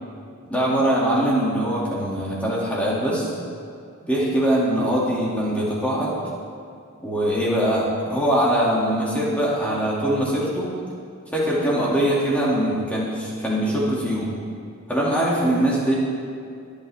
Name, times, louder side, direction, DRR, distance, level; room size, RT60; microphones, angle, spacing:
voice 1, 0.5-3.3 4.0-6.2 7.0-10.7 11.3-14.3 14.9-15.9, right 1 dB, 5° left, -7 dB, 2.7 m, -22 dB
23.5 x 8.5 x 3.7 m, 2.5 s
head